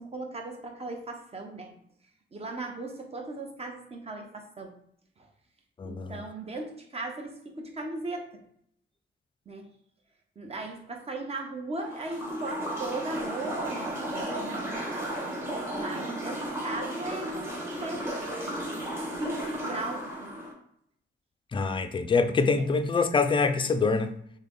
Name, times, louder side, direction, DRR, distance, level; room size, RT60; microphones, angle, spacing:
voice 1, 0.0-1.7 2.3-4.7 5.2-5.3 5.8-8.4 9.5-9.7 10.4-15.2 15.7-18.6 19.1-20.3, right 2 dB, 30° right, 0.9 m, -37 dB
voice 2, 5.8-6.2 21.5-24.1, left 4 dB, 25° left, 0.3 m, -25 dB
sound 1, 11.9-20.5, right 1 dB, 10° right, 1.2 m, -34 dB
6.4 x 2.2 x 3.7 m
wide cardioid pair, 160°, 20 cm